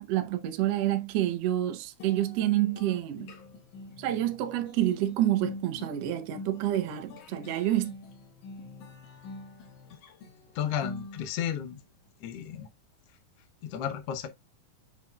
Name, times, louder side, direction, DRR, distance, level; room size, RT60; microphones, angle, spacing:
voice 1, 0.0-3.3 4.0-7.9, right 13 dB, 75° right, 1.5 m, -28 dB
sound 1, 2.0-11.6, left 3 dB, 60° left, 2.7 m, -45 dB
voice 2, 10.5-11.8 12.2-12.7 13.6-14.3, left 9 dB, 80° left, 1.3 m, -33 dB
7.3 x 5.8 x 2.3 m
omnidirectional pair, 4.1 m